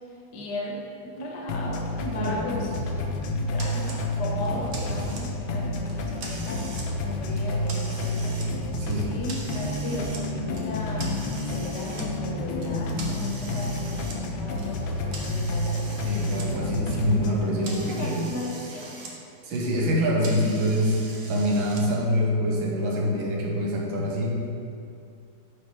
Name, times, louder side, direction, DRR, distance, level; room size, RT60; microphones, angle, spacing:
voice 1, 0.3-6.7 7.0-8.4 9.0-16.7 17.5-19.0, left 1 dB, 60° left, -2 dB, 1.6 m, -36 dB
sound 1, 1.5-17.5, left 1 dB, 75° left, 1.4 m, -30 dB
voice 2, 2.1-2.7 8.7-9.2 16.0-18.3 19.4-21.0 21.3-24.4, equal, 80° right, -2 dB, 1.8 m, -25 dB
sound 2, 3.6-4.0 4.4-5.5 5.9-6.9 7.2-8.5 8.9-10.2 10.5-12.0 12.6-16.5 16.8-19.1 19.4-21.8, right 3 dB, 60° right, 1.2 m, -42 dB
10.5 x 4.2 x 3.4 m, 2.5 s
omnidirectional pair, 2.2 m